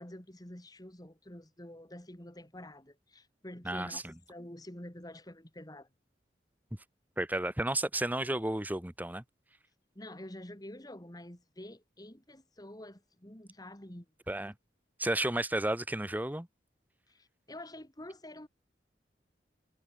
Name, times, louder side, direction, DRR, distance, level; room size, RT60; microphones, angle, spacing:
voice 1, 0.0-4.0 4.3-5.9 9.9-14.1 17.1-18.5, left 1 dB, 20° left, 3.0 m, -47 dB
voice 2, 3.6-4.1 7.2-9.2 14.3-14.5 15.0-16.5, right 1 dB, 10° right, 1.1 m, -32 dB
head